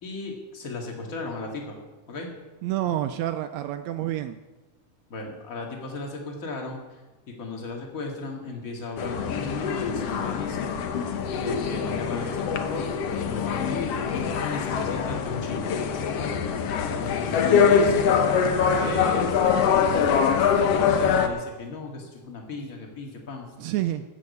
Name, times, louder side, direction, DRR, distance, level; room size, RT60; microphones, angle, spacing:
voice 1, 0.0-1.8 2.1-2.3 5.1-6.8 7.4-10.7 11.3-15.7 16.9-23.5, left 3 dB, 30° left, 1 dB, 2.1 m, -35 dB
voice 2, 2.6-4.4 23.6-24.0, right 13 dB, 85° right, 9 dB, 1.5 m, -28 dB
sound 1, 9.0-21.3, left 6 dB, 65° left, 1.7 m, -24 dB
14.5 x 6.6 x 8.3 m, 1.2 s
omnidirectional pair, 3.6 m